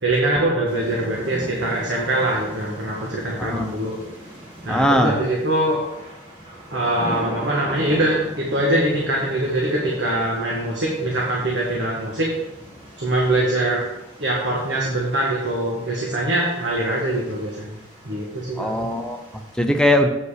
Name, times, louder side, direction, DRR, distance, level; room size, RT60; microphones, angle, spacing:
voice 1, 0.0-3.9 4.6-5.8 6.7-12.3 13.0-13.8 14.2-17.8 18.0-18.8, right 1 dB, 65° right, -3 dB, 1.5 m, -23 dB
sound 1, 0.7-19.6, equal, 30° right, 2.0 m, -39 dB
voice 2, 3.4-3.7 4.7-5.1 18.6-20.1, left 1 dB, 5° left, 4 dB, 0.7 m, -20 dB
8.0 x 5.2 x 4.9 m, 0.94 s
head